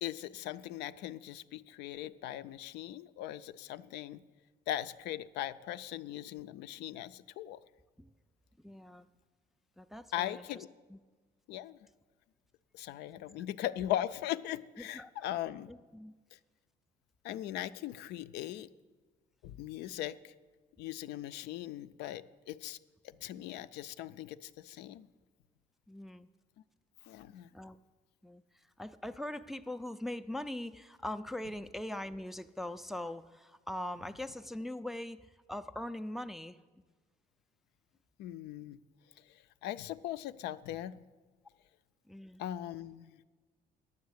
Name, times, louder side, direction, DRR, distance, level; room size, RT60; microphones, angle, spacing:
voice 1, 0.0-4.2 4.7-7.6 10.1-10.7 11.5-11.8 12.7-15.7 16.3-16.4 17.2-18.7 19.4-20.3 20.8-22.8 23.0-25.1 27.0-27.5 38.2-38.8 39.3-41.0 42.4-43.2, left 13 dB, 85° left, 13 dB, 0.4 m, -39 dB
voice 2, 8.6-9.1 9.8-10.6 10.9-11.0 13.4-13.5 14.8-15.1 15.7-16.1 25.9-26.3 27.5-27.8 28.2-28.4 28.8-36.6 42.1-42.4, left 1 dB, ahead, 10 dB, 0.3 m, -41 dB
9.4 x 7.3 x 7.9 m, 1.4 s
cardioid pair, 110°, 17 cm